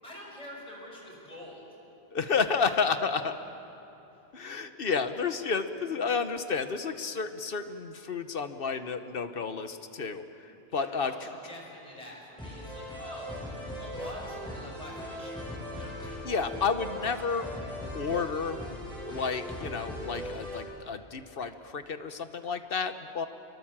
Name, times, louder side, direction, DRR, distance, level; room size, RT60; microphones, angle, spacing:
voice 1, 0.0-1.6 2.6-2.7 10.7-13.3 13.7-16.1, equal, 35° left, -3 dB, 6.2 m, -45 dB
voice 2, 2.1-3.3 4.3-11.3 16.2-17.5 17.9-18.7 19.1-23.3, left 5 dB, 60° left, 9 dB, 1.3 m, -31 dB
sound 1, 12.4-20.6, left 1 dB, 5° left, 7.9 m, -39 dB
26.0 x 22.5 x 7.4 m, 2.8 s
omnidirectional pair, 1.1 m